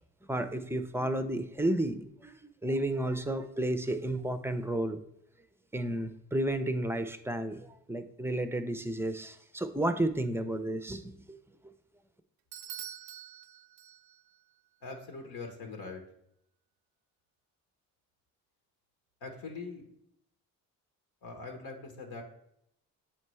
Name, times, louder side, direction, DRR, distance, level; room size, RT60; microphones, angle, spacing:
voice 1, 0.3-5.0 5.7-11.0 11.3-11.4, right 1 dB, 5° right, 10 dB, 0.5 m, -32 dB
Bell / Doorbell, 12.5-14.4, right 11 dB, 70° right, 0.5 m, -45 dB
voice 2, 14.8-16.0 19.2-19.8 21.2-22.2, left 3 dB, 65° left, 2 dB, 1.2 m, -42 dB
7.5 x 4.3 x 3.1 m, 0.76 s
supercardioid pair, 55°, 39 cm